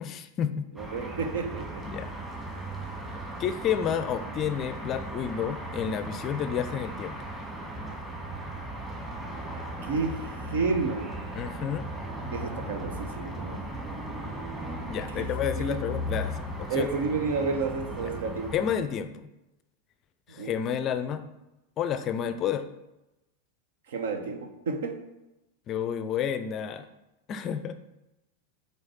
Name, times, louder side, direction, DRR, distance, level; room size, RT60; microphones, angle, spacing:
voice 1, 0.0-0.7 1.8-2.1 3.1-7.2 11.4-11.9 14.9-16.9 18.0-18.1 18.5-19.2 20.3-21.2 21.8-22.7 25.7-26.9 27.3-27.7, left 8 dB, 30° left, 11 dB, 0.5 m, -30 dB
voice 2, 0.7-1.8 9.8-11.2 12.3-13.7 15.1-15.8 16.7-18.5 20.4-20.5 23.9-25.1, right 4 dB, 60° right, 7 dB, 1.0 m, -31 dB
sound 1, 0.8-18.8, right 1 dB, 10° right, 1.8 m, -37 dB
6.3 x 4.5 x 6.1 m, 0.96 s
figure-of-eight pair, 90°, 0 cm